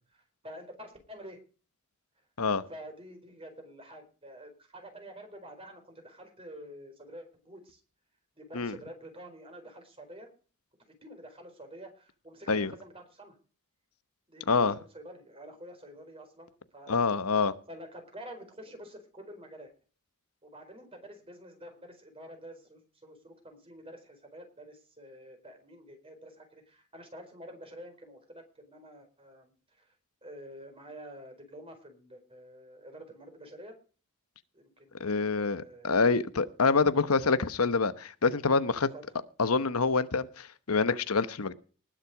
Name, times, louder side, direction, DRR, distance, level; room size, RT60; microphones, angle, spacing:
voice 1, 0.1-1.4 2.7-7.8 8.4-10.3 11.0-13.4 14.3-17.1 17.7-19.7 20.4-29.9 30.2-33.7 34.5-36.0 38.6-39.2, equal, 25° right, 5 dB, 4.5 m, -48 dB
voice 2, 14.5-14.8 16.9-17.5 35.0-38.9 39.4-41.5, left 4 dB, 90° left, 13 dB, 1.0 m, -26 dB
19.5 x 7.6 x 5.0 m, 0.38 s
head